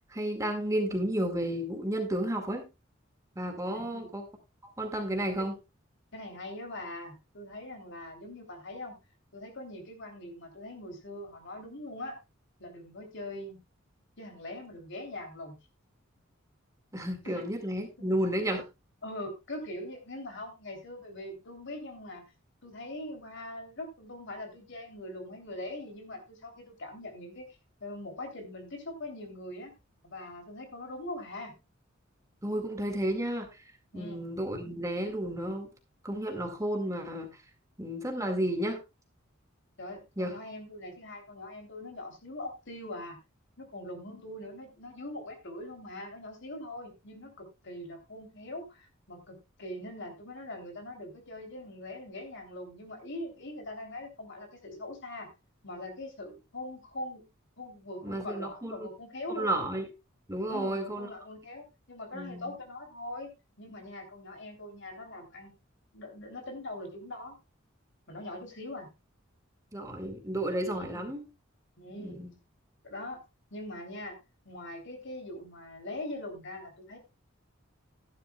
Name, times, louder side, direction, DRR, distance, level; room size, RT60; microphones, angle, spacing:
voice 1, 0.1-2.7 3.4-4.2 4.8-5.5 16.9-18.7 32.4-33.5 33.9-35.7 36.0-37.3 37.8-38.8 40.2-40.4 58.0-58.9 59.4-59.9 60.3-61.1 62.1-62.5 69.7-71.3 72.0-72.3, right 1 dB, 15° right, 4 dB, 2.0 m, -32 dB
voice 2, 3.7-4.2 5.4-5.5 6.1-8.9 9.3-12.2 12.6-13.6 14.2-15.5 17.2-17.4 18.0-18.1 19.0-22.2 22.6-29.7 30.0-31.5 33.9-34.2 39.8-43.2 43.6-55.3 55.6-57.2 57.6-59.6 60.5-63.3 63.6-65.5 65.9-67.3 68.1-68.9 70.7-71.1 71.8-72.2 72.8-73.2 73.5-74.2 74.4-77.0, left 1 dB, 60° left, 4 dB, 3.3 m, -42 dB
13.5 x 11.0 x 2.3 m, 0.25 s
head